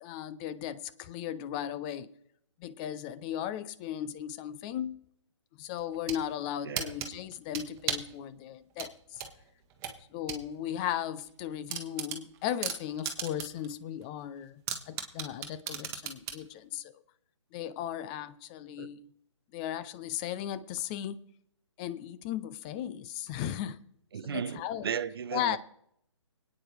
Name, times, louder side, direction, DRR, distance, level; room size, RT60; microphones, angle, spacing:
voice 1, 0.0-2.1 2.6-5.0 5.6-9.2 10.1-16.9 17.5-19.0 19.5-21.2 21.8-23.8 24.2-24.9 25.3-25.6, left 10 dB, 15° left, 0.4 m, -36 dB
sound 1, 5.8-6.2 6.8-8.1 8.8-10.4 10.8-10.9 11.3-11.4 11.7-13.7 14.0-14.1 14.7-16.4, right 9 dB, 20° right, 1.4 m, -35 dB
voice 2, 6.6-7.0 18.8-18.9 24.1-25.6, right 7 dB, 50° right, 0.6 m, -35 dB
24.5 x 9.3 x 3.3 m
figure-of-eight pair, 140°, 16 cm